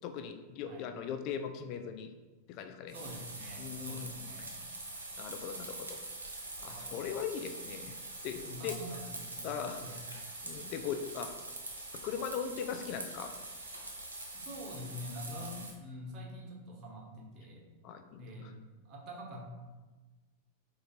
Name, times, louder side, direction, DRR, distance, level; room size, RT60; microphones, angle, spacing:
voice 1, 0.0-2.1 2.5-2.9 3.6-4.1 5.2-8.0 8.2-8.8 9.4-9.8 10.4-11.3 11.9-13.3 15.3-15.7 17.8-18.5, left 7 dB, 40° left, 7 dB, 0.3 m, -40 dB
voice 2, 2.9-4.6 6.7-7.0 8.4-9.5 9.8-10.0 14.3-17.7 18.2-18.5 18.8-19.4, equal, 35° right, -1 dB, 1.1 m, -46 dB
sound 1, 2.9-15.7, right 2 dB, 75° right, 0.7 m, -44 dB
4.4 x 2.6 x 4.0 m, 1.2 s
figure-of-eight pair, 90°, 0 cm